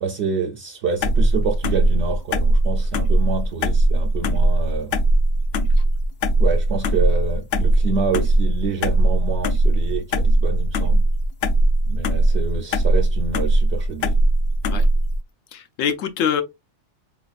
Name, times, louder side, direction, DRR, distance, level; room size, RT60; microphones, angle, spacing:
voice 1, 0.0-4.9 6.4-11.1 11.9-14.2, right 5 dB, 65° right, 0.8 m, -27 dB
sound 1, 1.0-15.2, right 1 dB, 65° left, 0.7 m, -19 dB
voice 2, 15.5-16.4, left 8 dB, 80° left, 1.0 m, -24 dB
4.1 x 3.1 x 2.3 m
omnidirectional pair, 1.3 m